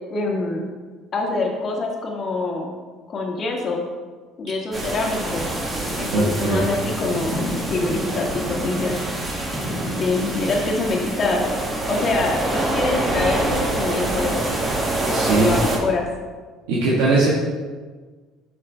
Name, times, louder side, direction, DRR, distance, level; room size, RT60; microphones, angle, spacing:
voice 1, 0.1-0.7 1.1-2.7 3.1-3.8 4.4-5.5 6.0-7.4 7.7-9.0 10.0-11.5 11.9-14.4 15.3-16.1, left 3 dB, 45° left, 0 dB, 1.7 m, -25 dB
sound 1, 4.7-15.8, right 2 dB, 30° right, 1.9 m, -26 dB
sound 2, 5.2-10.5, left 1 dB, 5° left, 2.1 m, -32 dB
voice 2, 6.1-6.7 15.1-15.6 16.7-17.3, right 3 dB, 85° right, -6 dB, 1.4 m, -19 dB
9.5 x 5.9 x 3.3 m, 1.5 s
supercardioid pair, 85°, 0 cm